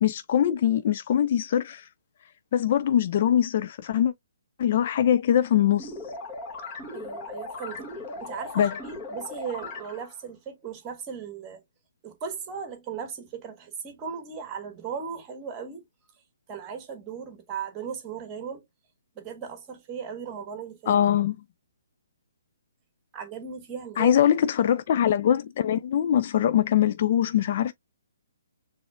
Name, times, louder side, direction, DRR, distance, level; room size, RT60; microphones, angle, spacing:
voice 1, 0.0-1.9 2.5-4.1 4.6-5.9 8.6-8.7 20.9-21.4 24.0-27.7, left 10 dB, 40° left, 0.4 m, -22 dB
sound 1, 5.8-10.2, left 2 dB, 20° left, 1.8 m, -38 dB
voice 2, 6.9-7.9 8.2-11.6 12.0-15.9 16.5-18.6 19.1-21.0 23.1-24.2, right 7 dB, 20° right, 1.6 m, -37 dB
6.9 x 3.4 x 2.3 m
figure-of-eight pair, 130°, 0 cm